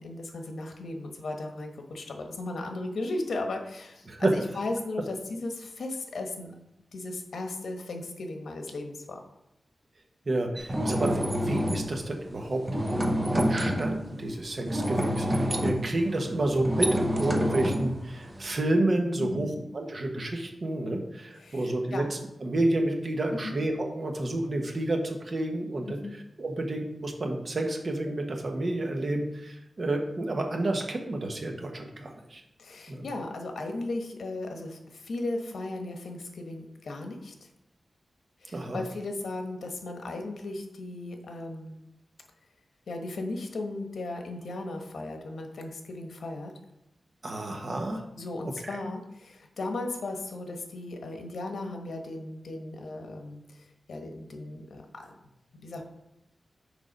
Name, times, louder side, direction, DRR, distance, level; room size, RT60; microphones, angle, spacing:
voice 1, 0.0-6.5 6.9-9.2 19.2-19.6 21.4-22.1 23.3-23.5 25.9-26.2 32.6-37.5 38.4-41.8 42.9-46.5 48.1-55.1 55.5-55.8, left 2 dB, 85° left, 4 dB, 1.1 m, -36 dB
voice 2, 10.2-13.0 13.3-32.4 32.9-33.0 38.5-38.8 47.2-48.0 48.6-48.8, right 1 dB, 45° right, 3 dB, 1.1 m, -30 dB
sound 1, 10.6-11.9 12.7-14.0 14.7-18.6, equal, 20° right, 0.8 m, -28 dB
6.5 x 4.7 x 5.3 m, 0.86 s
wide cardioid pair, 140°, 0 cm